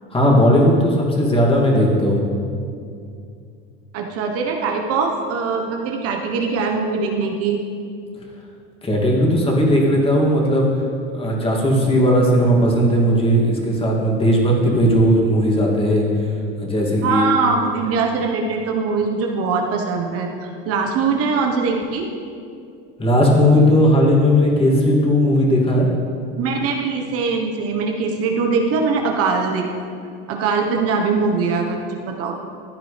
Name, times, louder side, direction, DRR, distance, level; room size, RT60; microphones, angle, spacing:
voice 1, 0.1-2.2 8.8-10.7 11.1-16.1 16.6-17.3 23.0-25.9, equal, 20° left, -2 dB, 2.5 m, -16 dB
voice 2, 3.9-7.6 17.0-22.1 26.4-29.7 30.3-31.8 32.1-32.4, right 4 dB, 50° right, 2 dB, 1.2 m, -22 dB
15.0 x 9.1 x 3.4 m, 2.4 s
hypercardioid pair, 95°, 30 cm